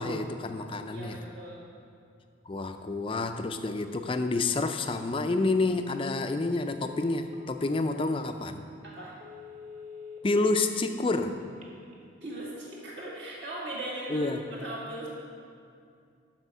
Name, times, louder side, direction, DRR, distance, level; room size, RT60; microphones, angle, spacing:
voice 1, 0.0-1.2 2.5-8.6 10.2-11.3 14.1-14.4, left 3 dB, 25° left, 7 dB, 0.4 m, -29 dB
voice 2, 0.9-1.6 8.8-9.1 12.2-15.1, right 1 dB, 60° right, -6 dB, 1.9 m, -39 dB
Telephone, 6.0-6.1 6.4-7.4 8.0-8.1 8.5-8.6 9.1-10.2 11.4-12.0, left 6 dB, 35° right, 1.0 m, -47 dB
12.0 x 4.3 x 5.5 m, 2.4 s
head